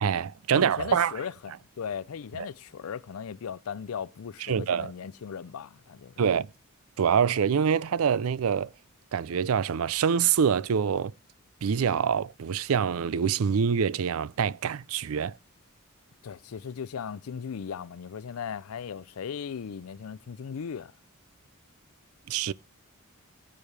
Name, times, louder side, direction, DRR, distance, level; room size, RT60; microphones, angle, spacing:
voice 1, 0.0-1.1 2.4-2.5 4.4-4.9 6.2-6.5 7.0-8.7 9.1-11.1 11.6-15.4 22.3-22.5, right 7 dB, 70° right, 0.4 m, -25 dB
voice 2, 0.5-6.1 16.2-20.9, left 7 dB, 75° left, 0.4 m, -37 dB
17.0 x 7.0 x 3.3 m
head